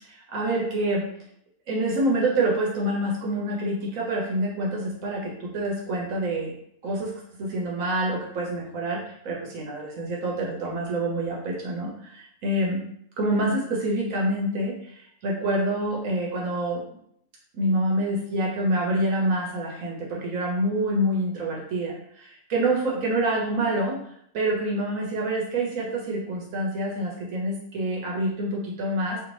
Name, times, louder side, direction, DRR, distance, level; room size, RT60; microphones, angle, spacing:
voice 1, 0.3-1.0 1.7-6.5 6.8-7.1 7.4-12.8 13.2-16.8 17.5-24.0 24.3-29.2, right 1 dB, 75° right, -2 dB, 1.1 m, -27 dB
2.7 x 2.6 x 3.1 m, 0.70 s
omnidirectional pair, 1.4 m